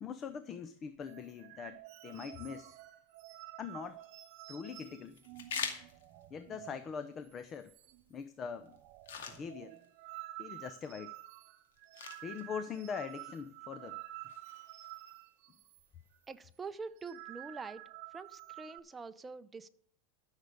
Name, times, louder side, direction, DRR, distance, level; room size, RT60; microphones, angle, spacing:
voice 1, 0.0-2.8 3.6-5.2 6.3-7.7 8.1-8.8 9.3-9.8 10.4-11.1 12.2-14.0, left 6 dB, 30° left, 12 dB, 0.7 m, -43 dB
sound 1, 1.0-7.0 7.2-7.4 7.7-8.2 8.5-15.9 16.1-16.3 16.8-18.8, right 16 dB, 55° right, 0.9 m, -50 dB
sound 2, 3.7-16.7, left 6 dB, 85° left, 2.2 m, -49 dB
voice 2, 16.3-17.8 18.1-19.7, right 4 dB, 15° right, 11 dB, 0.7 m, -45 dB
13.0 x 6.5 x 6.6 m, 0.64 s
supercardioid pair, 130°, 0 cm